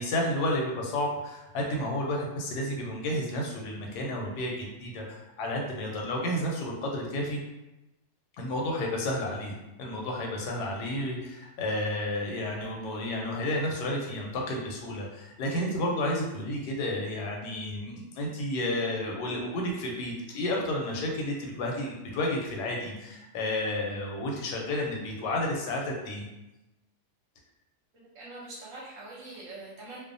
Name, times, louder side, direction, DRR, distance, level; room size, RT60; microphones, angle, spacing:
voice 1, 0.0-7.4 8.4-9.5 9.8-26.2, left 1 dB, 85° left, -1 dB, 1.2 m, -31 dB
voice 2, 27.9-30.0, right 2 dB, 65° right, -5 dB, 0.9 m, -44 dB
2.6 x 2.1 x 2.5 m, 0.99 s
omnidirectional pair, 1.7 m